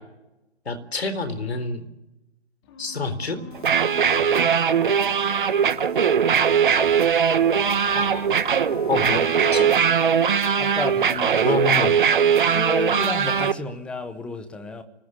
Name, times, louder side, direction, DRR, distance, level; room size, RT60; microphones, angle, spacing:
voice 1, 0.7-1.8 2.8-3.4 7.9-8.3 8.9-9.2 9.5-9.7 11.4-12.0, left 4 dB, 65° left, 3.9 m, -27 dB
sound 1, 2.6-10.6, left 7 dB, 25° left, 3.0 m, -43 dB
sound 2, 3.5-13.5, right 7 dB, 45° right, 1.5 m, -20 dB
voice 2, 10.6-11.5 12.5-14.8, left 3 dB, 5° left, 0.9 m, -31 dB
24.5 x 21.0 x 8.8 m
figure-of-eight pair, 145°, 34 cm